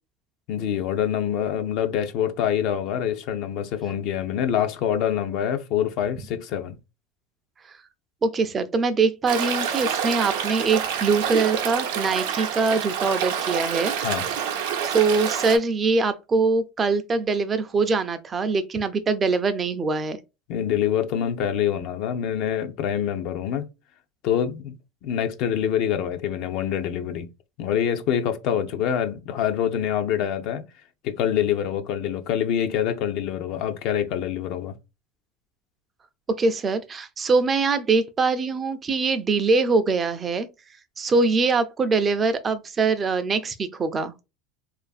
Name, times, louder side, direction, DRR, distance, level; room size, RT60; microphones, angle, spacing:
voice 1, 0.5-6.8 14.0-14.3 20.5-23.7 24.2-24.8 25.0-27.3 27.6-30.6 31.0-34.7, left 9 dB, 60° left, 0.4 m, -25 dB
voice 2, 8.2-13.9 14.8-20.2 36.3-40.5 41.0-44.1, right 4 dB, 25° right, 0.4 m, -23 dB
Stream, 9.3-15.6, right 8 dB, 80° right, 0.5 m, -27 dB
2.5 x 2.4 x 2.3 m
supercardioid pair, 110°, 0 cm